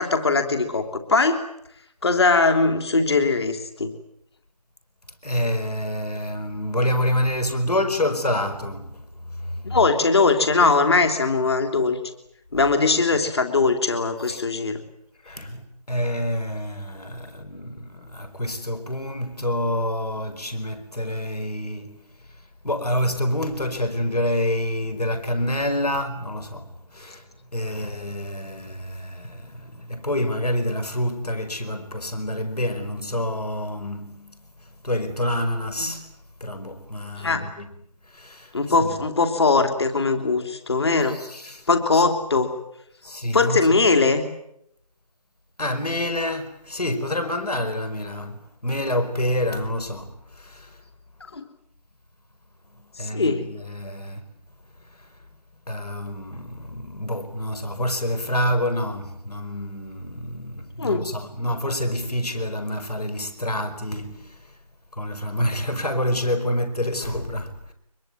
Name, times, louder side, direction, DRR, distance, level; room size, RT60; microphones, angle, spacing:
voice 1, 0.0-1.4 2.0-3.9 9.6-12.0 12.5-14.8 35.8-35.9 37.2-37.5 38.5-41.2 41.7-42.5 43.3-44.3 51.3-51.4 53.1-53.4 60.8-61.1, left 4 dB, 40° left, 3.4 m, -20 dB
voice 2, 5.2-9.8 14.2-14.4 15.2-22.0 22.6-34.4 34.8-36.1 36.4-37.8 38.1-39.0 41.1-41.7 41.9-42.0 43.0-43.7 45.6-50.8 52.7-54.2 55.0-55.1 55.7-64.4 64.9-67.7, left 1 dB, 70° left, 5.1 m, -27 dB
23.5 x 22.0 x 9.4 m
figure-of-eight pair, 165°, 20 cm